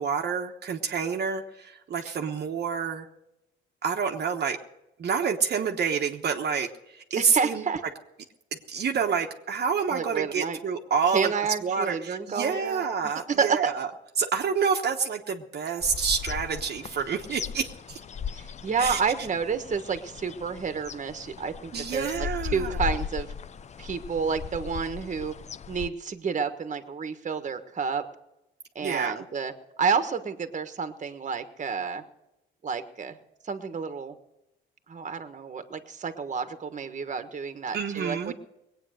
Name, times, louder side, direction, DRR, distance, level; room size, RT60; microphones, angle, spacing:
voice 1, 0.0-3.1 3.8-4.6 5.0-7.6 8.7-11.3 11.6-13.9 14.2-18.0 18.8-19.0 21.7-23.0 28.8-29.2 37.7-38.3, right 6 dB, 55° right, 2 dB, 1.2 m, -28 dB
voice 2, 7.1-7.8 9.9-10.6 11.1-12.9 13.4-13.7 18.3-23.3 23.8-25.3 25.7-28.0 28.7-29.5 29.8-32.0 32.6-33.2 33.4-34.2 34.9-38.3, right 5 dB, 40° right, 9 dB, 1.4 m, -30 dB
sound 1, 15.8-25.9, left 7 dB, 35° left, 0.5 m, -37 dB
20.0 x 9.0 x 6.4 m, 0.91 s
cardioid pair, 90°, 20 cm